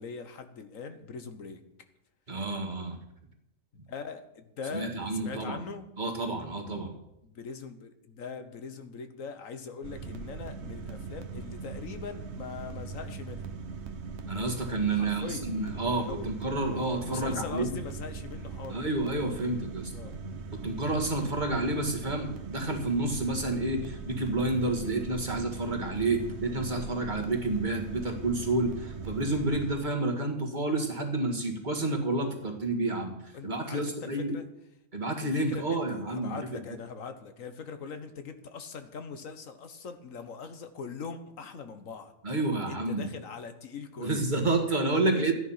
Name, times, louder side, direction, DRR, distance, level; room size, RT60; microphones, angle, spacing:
voice 1, 0.0-1.6 3.7-5.9 7.2-13.5 14.9-15.5 16.1-16.3 17.1-18.9 19.9-20.2 33.3-34.5 35.2-42.1 42.7-44.3 45.0-45.3, left 5 dB, 85° left, 9 dB, 1.5 m, -41 dB
voice 2, 2.3-3.0 4.7-5.6 6.0-6.9 14.3-17.8 18.7-19.9 20.5-34.3 34.9-36.6 42.2-43.1 44.0-45.3, right 2 dB, 35° right, 2 dB, 1.9 m, -30 dB
sound 1, 9.8-29.8, right 4 dB, 60° right, 1.3 m, -40 dB
13.5 x 9.9 x 5.7 m, 0.86 s
omnidirectional pair, 1.4 m